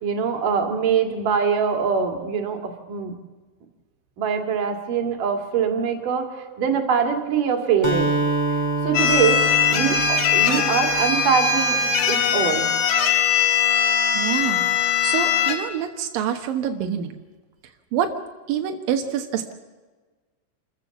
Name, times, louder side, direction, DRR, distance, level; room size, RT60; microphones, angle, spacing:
voice 1, 0.0-3.1 4.2-8.1 8.8-9.4 9.7-11.8 12.1-12.7, right 6 dB, 50° right, 4 dB, 3.2 m, -23 dB
Acoustic guitar, 7.8-11.7, right 3 dB, 10° left, 1.2 m, -26 dB
sound 1, 8.9-15.6, left 7 dB, 65° left, 4.0 m, -20 dB
voice 2, 14.1-14.6 15.0-17.1 17.9-18.1 18.5-19.5, right 9 dB, 80° right, 5 dB, 2.0 m, -26 dB
28.0 x 14.5 x 7.2 m, 1.3 s
omnidirectional pair, 5.9 m